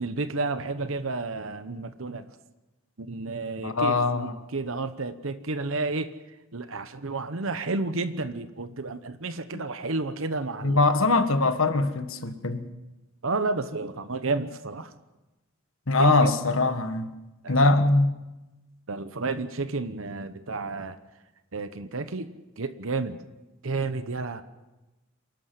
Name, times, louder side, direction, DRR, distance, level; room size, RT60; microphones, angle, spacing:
voice 1, 0.0-2.3 3.0-6.1 6.5-10.8 13.2-14.9 16.0-16.3 17.4-17.6 18.9-21.0 21.5-22.3 22.6-23.2 23.6-24.4, right 3 dB, 70° right, 1.0 m, -31 dB
voice 2, 3.6-4.3 10.6-12.7 15.9-17.1 17.5-18.1, left 2 dB, 70° left, 1.6 m, -22 dB
27.5 x 12.5 x 7.7 m
head